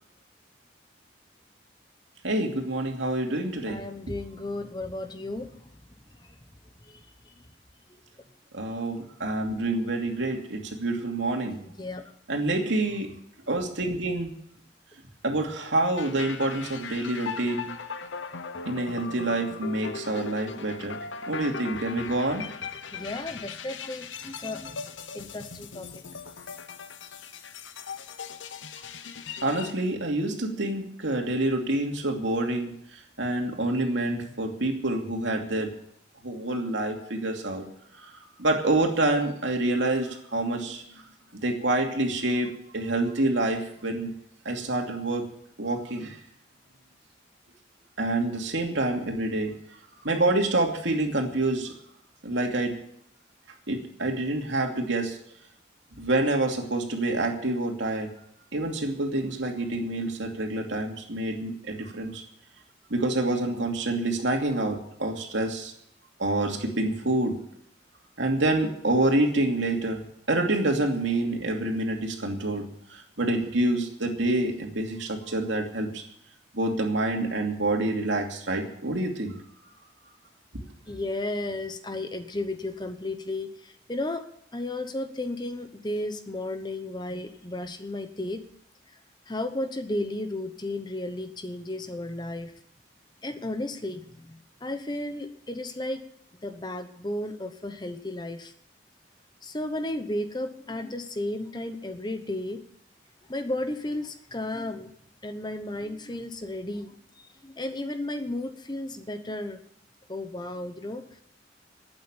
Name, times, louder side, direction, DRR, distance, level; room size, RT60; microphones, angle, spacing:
voice 1, 2.2-3.8 8.5-11.6 12.3-13.1 13.5-14.3 15.2-17.7 18.7-21.0 21.3-22.4 29.4-35.7 36.2-37.6 38.0-38.1 38.4-40.8 41.3-44.1 44.4-45.3 45.6-46.2 48.0-49.5 50.0-51.7 52.2-52.8 53.7-55.2 56.0-58.1 58.5-62.2 62.9-65.7 66.2-67.4 68.2-70.0 70.3-72.7 72.9-76.0 76.5-79.4 80.5-80.6, right 2 dB, 80° right, 2 dB, 2.6 m, -27 dB
voice 2, 3.7-5.7 6.9-7.0 11.6-12.1 22.9-24.9 25.1-26.2 80.9-84.2 84.5-88.4 89.3-92.5 93.2-96.0 96.4-98.5 99.4-102.6 103.3-104.9 105.2-107.0 107.4-109.6 110.1-111.0, left 1 dB, 25° left, 8 dB, 1.0 m, -34 dB
sound 1, 16.0-29.7, left 5 dB, 90° left, 0.9 m, -39 dB
12.0 x 8.9 x 9.0 m, 0.70 s
head